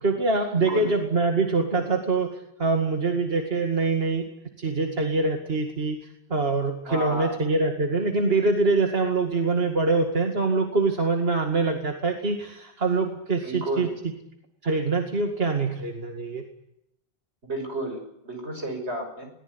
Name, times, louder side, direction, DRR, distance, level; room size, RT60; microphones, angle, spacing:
voice 1, 0.0-4.2 4.6-13.9 14.6-16.4, right 3 dB, 65° right, 4 dB, 2.4 m, -24 dB
voice 2, 0.5-0.9 6.9-7.4 13.4-13.9 17.5-19.3, right 1 dB, 85° right, 4 dB, 6.6 m, -32 dB
22.0 x 19.0 x 9.8 m, 0.79 s
omnidirectional pair, 1.1 m